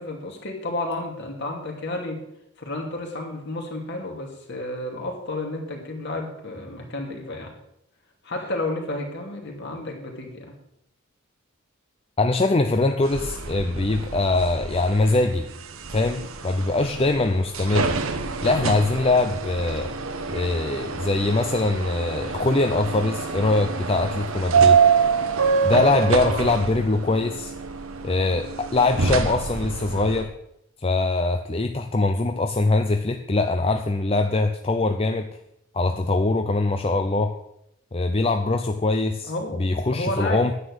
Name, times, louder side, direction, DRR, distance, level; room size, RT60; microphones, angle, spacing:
voice 1, 0.0-2.2 2.6-7.5 8.2-10.5 25.8-26.5 39.2-39.6 39.9-40.4, left 2 dB, 55° left, 1 dB, 2.6 m, -31 dB
voice 2, 12.2-15.5 15.9-18.0 18.4-19.9 20.3-24.8 25.6-27.5 28.0-30.3 30.8-35.3 35.7-37.3 37.9-39.3 39.6-40.5, left 2 dB, 25° left, 6 dB, 0.5 m, -22 dB
sound 1, 13.0-30.2, right 5 dB, 75° right, 1.0 m, -26 dB
9.9 x 9.2 x 6.5 m, 0.79 s
head